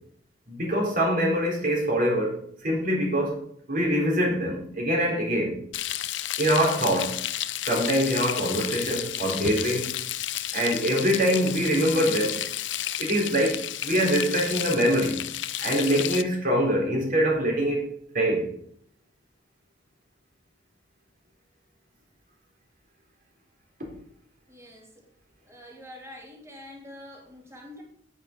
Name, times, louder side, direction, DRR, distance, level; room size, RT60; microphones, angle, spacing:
voice 1, 0.5-3.4 3.7-5.6 6.4-7.2 7.7-9.9 10.5-12.4 13.0-15.2 15.6-17.9 18.1-18.5, equal, 50° right, 0 dB, 4.0 m, -24 dB
Frying (food), 5.7-16.2, left 12 dB, 80° left, 0.6 m, -32 dB
voice 2, 24.5-24.9 25.5-27.8, left 1 dB, 15° right, -1 dB, 3.0 m, -45 dB
9.8 x 9.2 x 5.3 m, 0.65 s
head